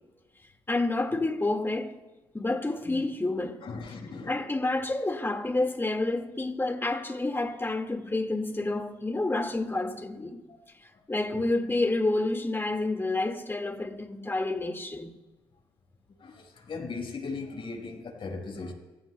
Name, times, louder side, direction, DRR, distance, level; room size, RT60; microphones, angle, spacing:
voice 1, 0.7-2.0 2.3-3.6 4.3-10.4 11.1-15.1, left 2 dB, 20° left, 2.0 m, -29 dB
voice 2, 3.6-4.5 10.5-10.6 11.3-11.4 16.2-18.7, left 4 dB, 55° left, 5.0 m, -38 dB
27.0 x 15.5 x 2.3 m
supercardioid pair, 55°, 11 cm